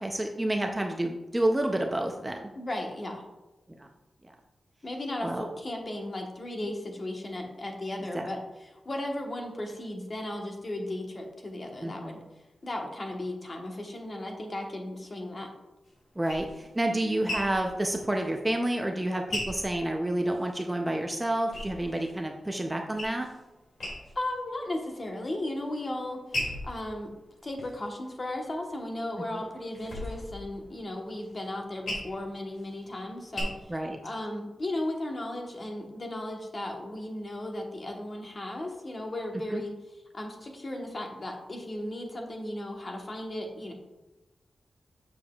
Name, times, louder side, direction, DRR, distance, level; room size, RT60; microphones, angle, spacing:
voice 1, 0.0-2.5 3.8-3.9 5.2-5.4 8.1-8.2 11.8-12.2 16.2-23.3 33.7-34.0 39.5-39.6, right 1 dB, 15° right, 2 dB, 0.5 m, -29 dB
voice 2, 2.5-3.2 4.8-12.2 12.6-15.5 24.1-26.2 26.6-27.1 27.4-33.5 34.0-39.7 40.1-43.7, left 1 dB, 35° left, 2 dB, 1.1 m, -35 dB
sound 1, 15.9-20.6 20.9-22.2 22.6-23.4 23.7-24.4 24.8-25.4 25.9-28.6 29.1-33.4, left 1 dB, 65° left, 2.3 m, -39 dB
7.1 x 6.7 x 2.3 m, 1.0 s
wide cardioid pair, 125°, 0 cm